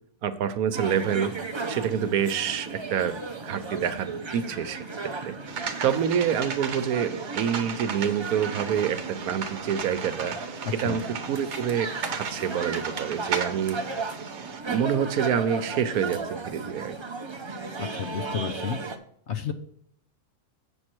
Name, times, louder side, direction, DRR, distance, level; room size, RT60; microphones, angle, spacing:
voice 1, 0.2-1.3 1.7-3.2 3.4-4.8 5.2-5.3 5.8-10.4 10.8-11.0 11.3-13.8 14.7-16.9, right 8 dB, 75° right, 11 dB, 1.2 m, -27 dB
sound 1, 0.7-19.0, right 4 dB, 35° right, 0.4 m, -36 dB
sound 2, 5.5-14.6, right 6 dB, 55° right, 1.1 m, -36 dB
voice 2, 10.6-11.0 17.8-18.8 19.3-19.5, left 7 dB, 60° left, 8 dB, 0.8 m, -31 dB
8.5 x 6.4 x 4.5 m, 0.66 s
omnidirectional pair, 1.6 m